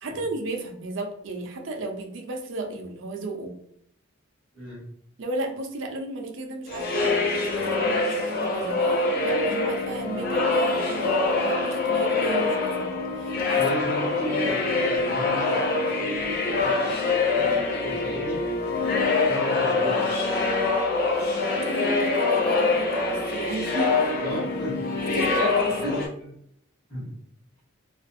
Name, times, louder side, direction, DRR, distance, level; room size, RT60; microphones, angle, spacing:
voice 1, 0.0-3.5 5.2-13.6 21.6-24.5 25.1-26.0, right 2 dB, 60° right, 3 dB, 0.5 m, -34 dB
sound 1, 6.7-26.1, left 3 dB, 45° left, 0.5 m, -24 dB
voice 2, 13.5-18.4 19.2-20.1 24.2-25.0 25.8-26.3 26.9-27.1, equal, 20° left, -10 dB, 1.0 m, -34 dB
2.4 x 2.4 x 2.5 m, 0.70 s
head